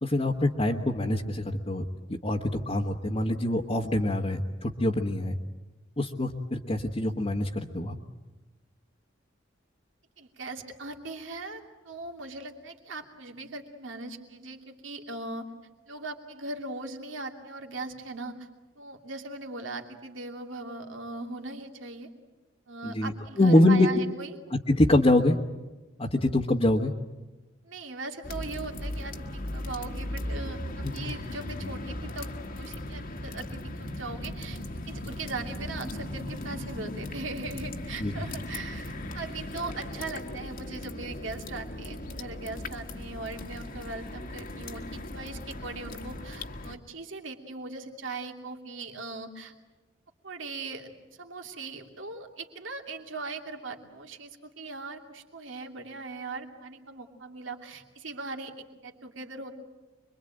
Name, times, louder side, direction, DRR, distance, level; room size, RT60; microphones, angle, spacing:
voice 1, 0.0-1.8 2.1-5.4 6.0-8.0 22.8-23.1 23.4-23.9 24.5-25.4 26.0-26.9 30.8-30.9 38.0-38.1, left 1 dB, 30° left, -2 dB, 1.3 m, -24 dB
voice 2, 10.2-15.5 15.9-18.5 18.8-22.1 22.7-24.4 27.6-32.3 32.5-34.6 34.9-49.5 50.2-50.9 51.2-59.5, right 3 dB, 75° right, 3 dB, 2.8 m, -39 dB
Melting snow dripping from trees, 28.2-46.8, left 1 dB, 50° left, 1.7 m, -38 dB
26.0 x 23.0 x 9.0 m, 1.2 s
head